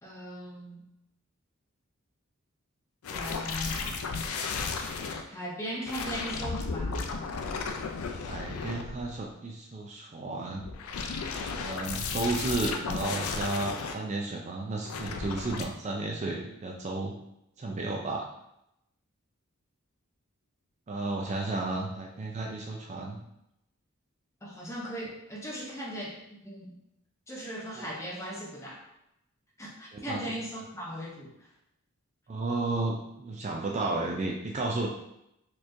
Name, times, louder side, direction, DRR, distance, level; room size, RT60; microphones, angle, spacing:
voice 1, 0.0-0.8 3.1-4.0 5.3-7.0 24.4-26.7 27.3-28.8 29.6-31.3, equal, 15° left, -3 dB, 0.7 m, -38 dB
sound 1, 3.0-5.2 5.8-9.3 10.5-13.9 14.8-15.6, left 4 dB, 75° left, 0.4 m, -34 dB
voice 2, 8.3-10.6 11.4-17.1 17.6-18.3 20.9-23.2 27.8-27.9 29.9-30.2 32.3-34.9, right 2 dB, 30° right, -1 dB, 0.3 m, -33 dB
4.1 x 3.0 x 2.6 m, 0.83 s
head